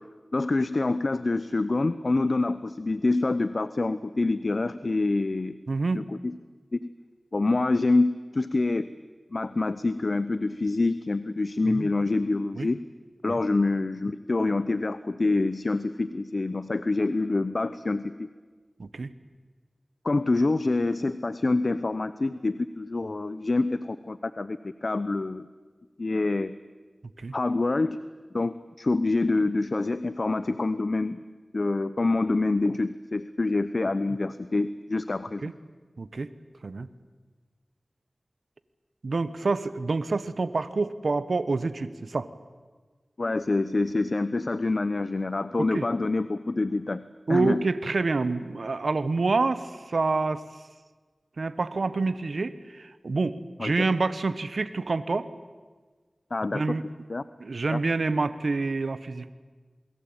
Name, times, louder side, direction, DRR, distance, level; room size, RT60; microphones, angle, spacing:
voice 1, 0.3-5.6 5.9-6.4 6.7-6.8 7.3-8.9 9.3-12.9 13.2-18.3 20.0-25.5 26.0-26.6 27.3-28.1 28.3-31.2 31.5-35.5 43.2-47.6 53.6-53.7 56.3-56.8 57.1-57.2 57.7-57.8, left 2 dB, 60° left, 13 dB, 0.9 m, -26 dB
voice 2, 5.7-6.0 11.6-11.9 12.6-12.7 13.3-13.4 18.8-19.1 27.2-27.3 35.4-35.5 36.0-36.3 36.6-36.9 39.0-42.3 45.6-45.8 47.3-50.4 51.4-55.3 56.5-56.8 57.4-59.3, right 3 dB, 85° right, 13 dB, 1.2 m, -27 dB
28.0 x 22.0 x 8.9 m, 1.4 s
cardioid pair, 40°, 0 cm